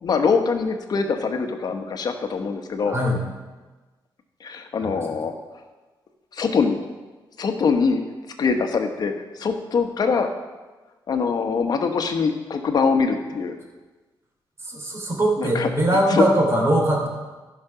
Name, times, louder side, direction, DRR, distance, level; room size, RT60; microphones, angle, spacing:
voice 1, 0.0-3.0 4.4-5.3 6.3-6.8 7.4-8.0 8.4-10.3 11.1-13.5 15.4-15.7 16.1-16.3, left 5 dB, 55° left, 5 dB, 1.1 m, -23 dB
voice 2, 2.8-3.2 4.8-5.0 14.6-17.1, right 1 dB, 35° right, 0 dB, 3.0 m, -21 dB
14.0 x 6.0 x 5.7 m, 1.2 s
cardioid pair, 120°, 8 cm